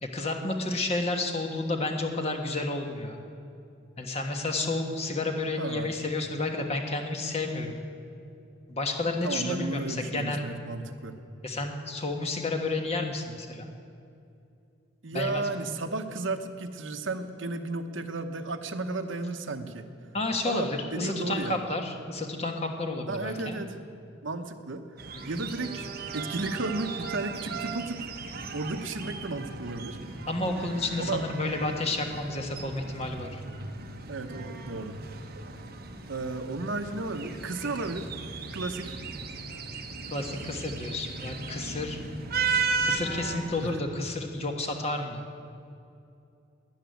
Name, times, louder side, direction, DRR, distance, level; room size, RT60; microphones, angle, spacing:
voice 1, 0.0-3.2 4.0-7.8 8.7-10.5 11.4-13.7 15.1-15.4 20.1-23.6 25.1-25.4 30.3-33.4 39.7-42.0 42.8-45.3, left 2 dB, 30° left, 3 dB, 1.4 m, -31 dB
voice 2, 5.6-5.9 9.2-11.2 15.0-19.9 20.4-21.6 23.1-23.8 24.2-24.9 25.3-25.9 26.1-28.0 28.5-30.0 31.0-31.2 34.1-35.0 36.1-38.1 38.5-39.0 43.6-43.8, right 3 dB, 70° right, 8 dB, 0.9 m, -33 dB
sound 1, 25.0-43.7, right 4 dB, 50° right, 1.2 m, -36 dB
13.0 x 10.5 x 9.2 m, 2.6 s
head